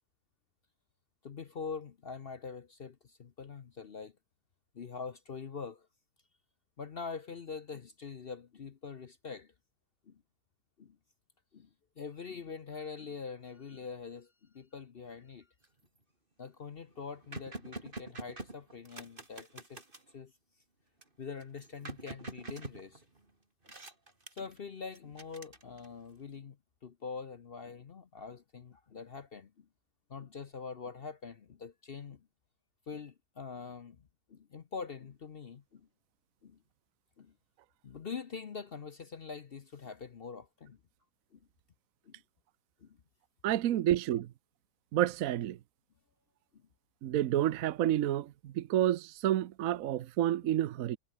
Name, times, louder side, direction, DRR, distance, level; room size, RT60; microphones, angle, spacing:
voice 1, 1.2-4.1 4.7-5.9 6.8-9.5 10.1-10.2 10.8-11.0 11.5-11.7 12.0-15.5 16.4-19.8 20.1-20.3 21.2-23.0 24.4-26.6 26.8-29.7 30.1-32.3 32.9-35.9 36.4-36.6 37.2-37.3 37.8-40.8 41.3-41.4 42.0-42.2 42.8-43.0 46.5-46.6, left 5 dB, 45° left, 0.8 m, -44 dB
sound 1, 15.6-16.0 16.4-16.5 16.7-20.1 21.0-23.3 23.6-24.6 24.9-26.1, right 2 dB, 30° right, 3.5 m, -46 dB
voice 2, 43.4-44.3 44.9-45.6 47.0-51.0, right 12 dB, 65° right, 0.9 m, -29 dB
omnidirectional pair, 1.9 m